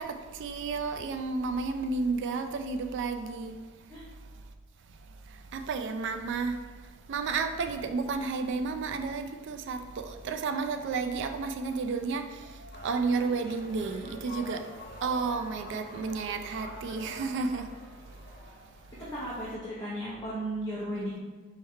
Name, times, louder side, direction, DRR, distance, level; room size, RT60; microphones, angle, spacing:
voice 1, 0.0-3.7 5.3-14.7 15.0-17.7, right 4 dB, 60° right, 7 dB, 0.3 m, -32 dB
sound 1, 12.7-19.6, left 2 dB, 55° left, 1.1 m, -47 dB
voice 2, 19.0-21.2, right 1 dB, 15° left, -9 dB, 0.7 m, -35 dB
4.3 x 3.1 x 3.5 m, 1.3 s
head